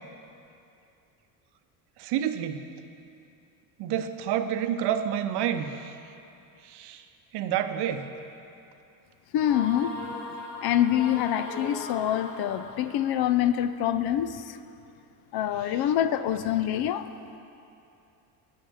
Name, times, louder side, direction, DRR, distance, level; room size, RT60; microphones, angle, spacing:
voice 1, 2.0-2.6 3.8-5.9 6.6-7.0 7.3-8.1, right 9 dB, 60° right, 9 dB, 0.7 m, -29 dB
voice 2, 9.3-9.9 10.6-14.6 15.3-17.1, left 11 dB, 55° left, 12 dB, 0.5 m, -25 dB
sound 1, 9.4-13.2, left 3 dB, 70° left, 1.4 m, -38 dB
9.0 x 5.8 x 6.9 m, 2.7 s
supercardioid pair, 85°, 46 cm